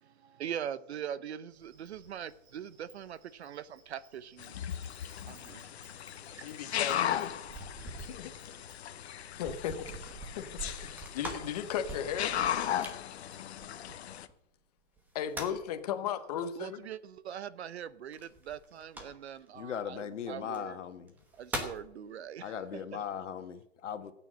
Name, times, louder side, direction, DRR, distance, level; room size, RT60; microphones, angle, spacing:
voice 1, 0.0-4.6 5.2-5.7 5.9-6.0 6.3-7.0 16.6-20.8 21.4-22.8, right 9 dB, 60° right, 17 dB, 0.8 m, -42 dB
Insect, 1.5-8.9, right 4 dB, 35° right, 3.7 m, -62 dB
sound 1, 4.4-14.3, left 10 dB, 60° left, 0.9 m, -37 dB
voice 2, 6.4-7.3 8.0-8.3 9.3-10.1 10.3-12.3 15.1-16.8, left 9 dB, 30° left, 9 dB, 1.1 m, -36 dB
sound 2, 6.9-14.3 15.0-15.8 18.1-19.5 20.4-20.6 21.1-21.9, right 1 dB, 5° right, 1.1 m, -44 dB
voice 3, 19.5-21.1 22.4-24.1, left 8 dB, 75° left, 8 dB, 1.6 m, -38 dB
15.5 x 9.0 x 6.3 m, 0.78 s
hypercardioid pair, 170°, 36 cm